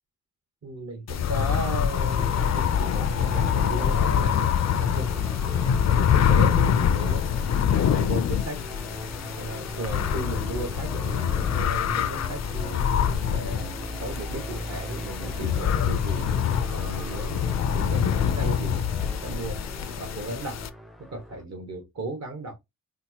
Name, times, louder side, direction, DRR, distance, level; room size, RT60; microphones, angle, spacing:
voice 1, 0.6-5.1 5.8-7.3 7.7-8.6 9.4-16.3 16.7-19.6 20.0-20.6 21.0-22.6, right 2 dB, 55° right, 1.2 m, -36 dB
sound 1, 1.1-20.7, left 8 dB, 55° left, 0.4 m, -25 dB
sound 2, 1.9-21.4, equal, ahead, 0.4 m, -38 dB
4.3 x 2.1 x 2.8 m
wide cardioid pair, 105°, 32 cm